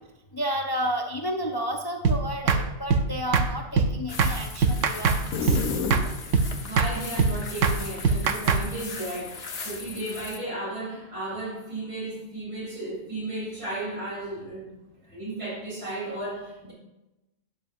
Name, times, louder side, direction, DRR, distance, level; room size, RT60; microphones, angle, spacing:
voice 1, 0.3-5.6, equal, 25° left, 0.5 m, -31 dB
sound 1, 2.0-2.2 2.5-2.6 2.9-3.1 3.3-3.5 3.8-3.9 4.2-4.3 4.6-5.2 5.5-5.6 5.9-6.1 6.3-6.5 6.8-6.9 7.2-7.3 7.6-7.8 8.0-8.6, right 5 dB, 70° right, 1.1 m, -21 dB
sound 2, 4.1-10.4, left 4 dB, 50° left, 1.2 m, -39 dB
sound 3, 5.3-6.6, left 6 dB, 90° left, 1.3 m, -30 dB
voice 2, 6.3-16.7, right 1 dB, 45° right, 4.0 m, -34 dB
11.5 x 10.0 x 2.6 m
omnidirectional pair, 1.4 m